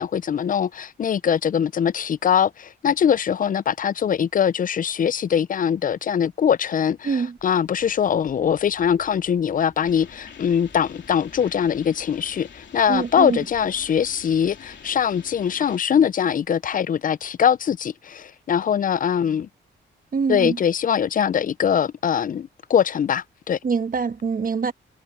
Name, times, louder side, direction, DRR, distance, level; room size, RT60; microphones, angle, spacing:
voice 1, 0.0-19.5 20.3-23.6, left 8 dB, 40° left, 0.4 m, -22 dB
voice 2, 7.0-7.4 12.9-13.4 20.1-20.6 23.6-24.7, right 5 dB, 45° right, 1.3 m, -24 dB
sound 1, 7.4-15.4, right 1 dB, 10° right, 7.9 m, -54 dB
sound 2, 9.8-15.8, left 7 dB, 60° left, 3.3 m, -46 dB
cardioid pair, 85°, 21 cm